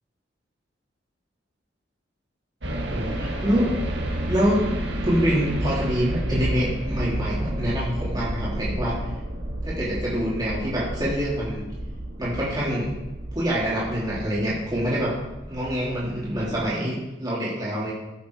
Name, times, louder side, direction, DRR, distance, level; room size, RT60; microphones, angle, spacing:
sound 1, 2.6-16.7, right 1 dB, 70° right, 1.8 m, -31 dB
voice 1, 2.9-3.7 4.2-4.6 5.0-8.9 9.6-11.7 12.2-12.9 13.3-15.1 15.4-17.9, equal, 25° right, -8 dB, 3.2 m, -25 dB
14.5 x 7.2 x 4.7 m, 1.0 s
head